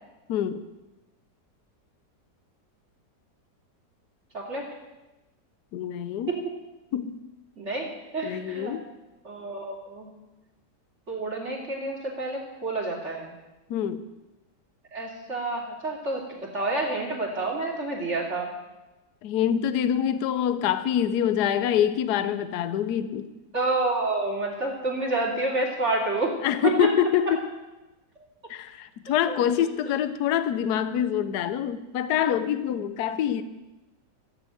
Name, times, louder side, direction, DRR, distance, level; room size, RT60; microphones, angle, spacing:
voice 1, 0.3-0.7 5.7-6.3 6.9-7.2 8.2-8.9 13.7-14.0 19.2-23.3 26.4-27.5 28.5-33.4, left 9 dB, 70° left, 13 dB, 1.2 m, -25 dB
voice 2, 4.3-4.7 6.3-6.4 7.6-7.9 8.1-8.7 9.2-10.1 11.1-13.3 14.9-18.5 23.5-26.3 26.6-26.9 29.1-29.4, right 2 dB, 40° right, -1 dB, 3.1 m, -29 dB
14.5 x 8.2 x 9.0 m, 1.1 s
omnidirectional pair, 1.8 m